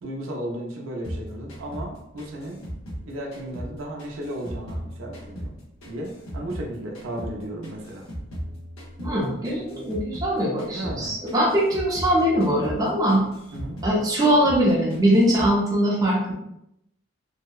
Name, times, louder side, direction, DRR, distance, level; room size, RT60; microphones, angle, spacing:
voice 1, 0.0-2.6 3.1-5.5 5.9-8.1 10.7-11.1 13.5-13.8, right 1 dB, 70° right, 0 dB, 0.5 m, -34 dB
sound 1, 1.0-3.7 4.0-6.7 6.9-10.3 10.6-11.0 11.3-14.0 14.2-14.6 14.9-15.6, equal, 80° left, 0.7 m, -37 dB
voice 2, 9.0-13.2 13.8-16.3, equal, 15° right, -5 dB, 0.4 m, -21 dB
2.7 x 2.0 x 2.3 m, 0.81 s
head